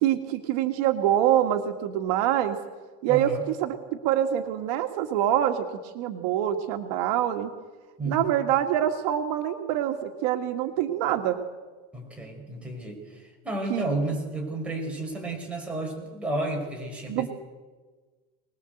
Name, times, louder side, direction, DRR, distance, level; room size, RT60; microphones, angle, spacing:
voice 1, 0.0-2.6 3.0-3.3 3.6-3.7 4.0-7.5 8.1-11.4 13.7-13.9 17.1-17.3, right 11 dB, 70° right, 5 dB, 1.9 m, -25 dB
voice 2, 3.1-3.4 8.0-8.3 11.9-17.3, right 2 dB, 5° right, -1 dB, 5.4 m, -32 dB
24.5 x 20.0 x 7.9 m, 1.3 s
cardioid pair, 165°, 21 cm